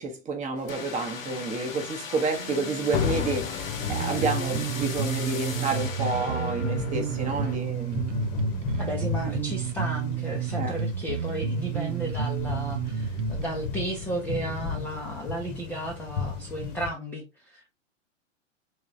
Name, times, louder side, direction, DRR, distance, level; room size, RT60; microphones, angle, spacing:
voice 1, 0.0-8.2 10.5-10.7, right 4 dB, 20° right, 0.9 m, -30 dB
sound 1, 0.7-7.6, left 5 dB, 90° left, 0.9 m, -37 dB
sound 2, 0.7-1.7 2.0-2.2 2.5-2.7 2.9-16.9, left 6 dB, 35° left, 0.9 m, -35 dB
Bass guitar, 3.9-13.5, right 6 dB, 65° right, 0.7 m, -30 dB
voice 2, 8.8-17.7, right 1 dB, 5° left, 0.5 m, -34 dB
3.7 x 3.1 x 2.6 m
figure-of-eight pair, 110°, 38 cm